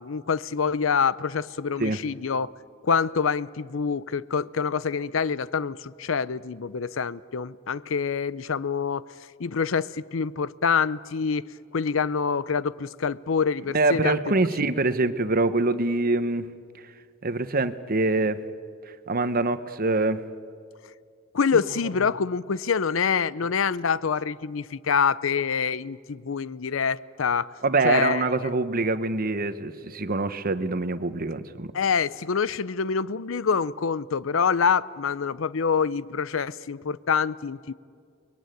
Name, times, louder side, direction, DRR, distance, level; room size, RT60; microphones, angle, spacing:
voice 1, 0.0-2.5 2.8-9.0 9.4-11.5 11.7-14.2 21.3-27.5 27.8-28.2 31.7-37.7, left 6 dB, 75° left, 0.6 m, -26 dB
voice 2, 13.7-16.5 17.2-18.4 19.1-20.2 27.6-31.7, right 2 dB, 45° right, 1.1 m, -24 dB
30.0 x 21.5 x 9.2 m
head